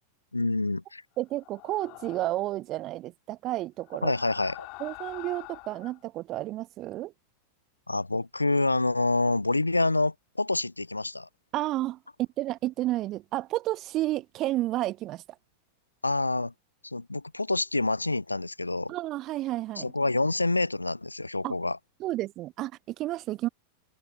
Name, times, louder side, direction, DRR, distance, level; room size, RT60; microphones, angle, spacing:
voice 1, 0.3-1.0 4.0-4.7 7.9-11.3 16.0-16.5 16.8-18.9 19.8-21.8, left 2 dB, 85° left, 0.3 m, -27 dB
voice 2, 1.2-4.1 4.8-7.1 11.5-15.2 18.9-19.9 21.4-21.5 22.0-23.5, right 15 dB, 35° right, 1.2 m, -31 dB
sound 1, 1.4-2.6 3.8-6.0, left 29 dB, 45° left, 3.6 m, -45 dB
open air
figure-of-eight pair, 90°, 0 cm